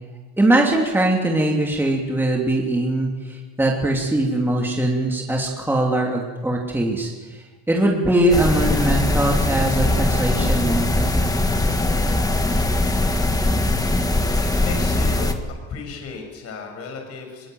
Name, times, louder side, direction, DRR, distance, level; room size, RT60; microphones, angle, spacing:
voice 1, 0.4-10.9 11.1-11.2, right 1 dB, 5° right, -1 dB, 2.9 m, -21 dB
sound 1, 8.3-15.3, left 2 dB, 10° left, 1.7 m, -21 dB
voice 2, 14.4-15.4 15.7-17.5, left 5 dB, 50° left, 3 dB, 6.5 m, -35 dB
22.5 x 22.5 x 7.9 m, 1.3 s
cardioid pair, 140°, 32 cm